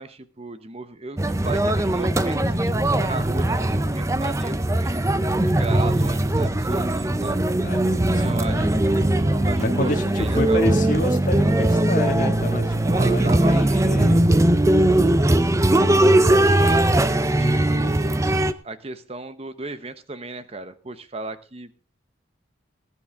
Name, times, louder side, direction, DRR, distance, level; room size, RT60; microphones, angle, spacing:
voice 1, 0.0-5.1 5.6-7.4 7.9-10.6 12.9-14.5 17.4-18.4 18.6-21.7, right 3 dB, 30° right, 12 dB, 0.9 m, -35 dB
sound 1, 1.2-18.5, right 1 dB, 15° right, 0.5 m, -20 dB
voice 2, 7.6-8.8 9.5-14.2 17.4-17.9, left 1 dB, 40° left, 2 dB, 1.9 m, -29 dB
19.5 x 10.0 x 3.6 m, 0.36 s
head